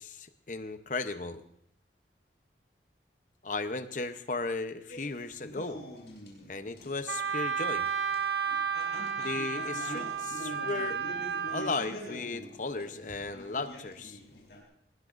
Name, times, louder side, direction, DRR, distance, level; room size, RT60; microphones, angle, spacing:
voice 1, 0.0-1.4 3.4-5.8 6.5-7.9 9.2-11.0 11.5-14.2, left 3 dB, 45° left, 9 dB, 0.9 m, -35 dB
sound 1, 4.9-14.6, equal, 80° left, 5.6 m, -45 dB
Wind instrument woodwind instrument, 7.1-11.7, right 7 dB, 75° right, 1.2 m, -32 dB
23.5 x 21.0 x 2.6 m, 0.71 s
head